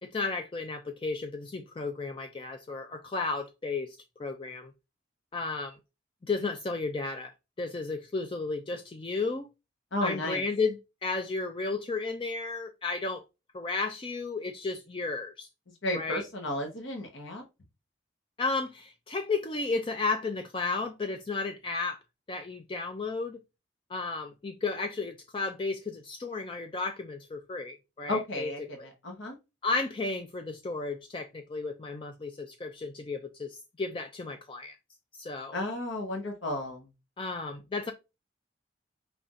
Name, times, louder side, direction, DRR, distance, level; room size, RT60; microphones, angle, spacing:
voice 1, 0.0-4.7 5.3-5.8 6.2-7.3 7.6-9.5 10.0-10.8 11.0-13.2 13.5-15.5 15.9-16.2 18.4-22.0 22.3-23.4 23.9-28.9 29.6-34.7 35.2-35.6 37.2-37.9, left 3 dB, 25° left, 0.4 m, -33 dB
voice 2, 9.9-10.4 15.8-17.4 28.1-29.4 35.5-36.9, left 1 dB, 90° left, 1.0 m, -33 dB
5.4 x 3.3 x 2.5 m
head